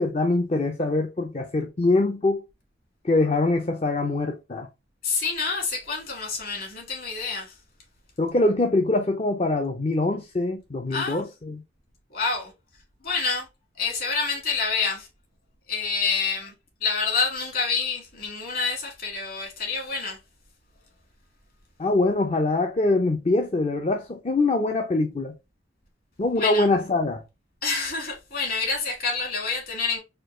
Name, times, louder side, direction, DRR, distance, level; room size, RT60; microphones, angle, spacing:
voice 1, 0.0-2.4 3.0-4.7 8.2-11.6 21.8-25.3 26.2-27.2, left 2 dB, 35° left, 0.5 m, -23 dB
voice 2, 5.0-7.6 10.9-11.2 12.1-12.5 13.0-13.5 13.8-15.1 15.7-16.5 16.8-20.2 26.4-26.7 27.6-30.0, left 4 dB, 50° left, 2.0 m, -27 dB
4.4 x 2.3 x 3.7 m
head